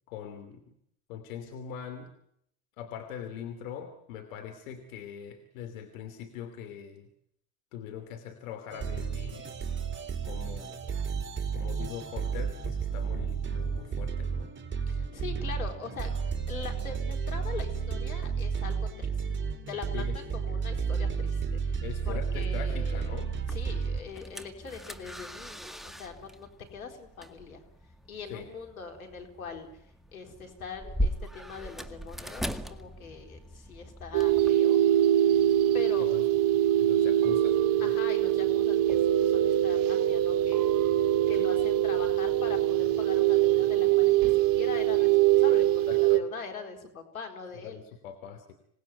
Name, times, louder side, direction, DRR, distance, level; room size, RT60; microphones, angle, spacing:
voice 1, 0.1-0.7 1.1-2.1 2.8-7.1 7.7-9.5 10.2-11.0 11.5-14.5 19.9-20.2 21.8-23.3 28.3-28.5 36.0-36.3 36.8-38.0 41.4-41.5 45.9-46.2 47.6-48.4, left 8 dB, 75° left, 8 dB, 3.0 m, -42 dB
sound 1, 8.7-24.0, right 6 dB, 30° right, 4.2 m, -32 dB
voice 2, 14.9-16.1 16.5-19.2 19.7-23.1 23.5-27.6 28.1-29.7 30.1-34.8 35.7-36.1 37.8-40.7 41.3-45.7 45.9-47.8, left 5 dB, 90° left, 4 dB, 4.4 m, -42 dB
sound 2, 23.3-34.5, equal, ahead, 2.0 m, -39 dB
sound 3, 34.1-46.2, right 12 dB, 55° right, 2.0 m, -23 dB
27.0 x 19.5 x 9.5 m, 0.73 s
hypercardioid pair, 75°, 41 cm